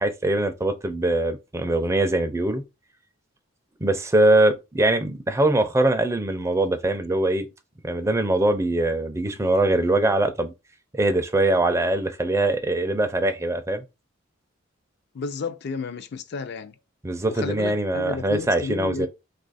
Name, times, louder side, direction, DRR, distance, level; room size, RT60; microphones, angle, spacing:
voice 1, 0.0-2.6 3.8-7.5 7.8-10.5 10.9-13.8 17.0-19.1, right 2 dB, 15° right, 0.4 m, -22 dB
voice 2, 15.1-16.8 17.3-19.1, left 5 dB, 55° left, 0.4 m, -32 dB
2.7 x 2.4 x 4.0 m
head